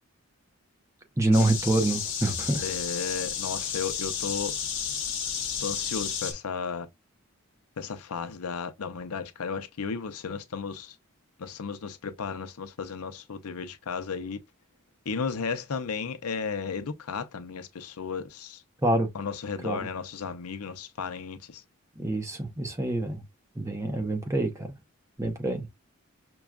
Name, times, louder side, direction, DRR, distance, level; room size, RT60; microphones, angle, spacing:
voice 1, 1.2-2.6 18.8-19.1 19.6-19.8 22.0-23.2 23.6-24.7 25.2-25.7, right 2 dB, 15° right, 0.6 m, -26 dB
sound 1, 1.3-6.3, left 8 dB, 55° left, 0.9 m, -32 dB
voice 2, 2.6-4.5 5.6-6.9 7.8-11.0 11.4-14.4 15.1-18.6 19.1-21.6, left 5 dB, 85° left, 0.6 m, -34 dB
6.0 x 2.3 x 2.3 m
head